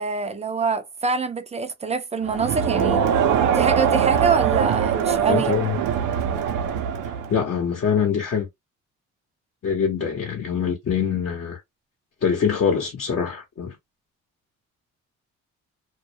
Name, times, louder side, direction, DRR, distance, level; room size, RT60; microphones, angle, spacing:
voice 1, 0.0-3.0 3.5-5.5, right 4 dB, 20° right, 0.4 m, -25 dB
Crowd, 2.3-7.4, right 8 dB, 80° right, 0.6 m, -22 dB
voice 2, 5.3-5.8 7.3-8.5 9.6-11.6 12.2-13.7, left 7 dB, 50° left, 0.8 m, -24 dB
2.2 x 2.0 x 2.7 m
cardioid pair, 90°, 30 cm